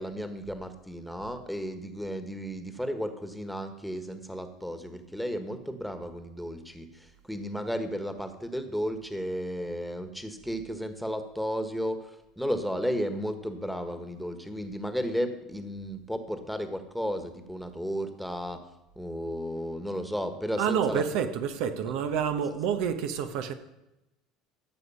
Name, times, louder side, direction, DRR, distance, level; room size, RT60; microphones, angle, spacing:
voice 1, 0.0-18.6 19.0-21.0, equal, ahead, 1.5 m, -33 dB
voice 2, 20.6-23.5, right 7 dB, 70° right, 1.0 m, -28 dB
15.0 x 6.6 x 5.6 m
supercardioid pair, 95°, 0 cm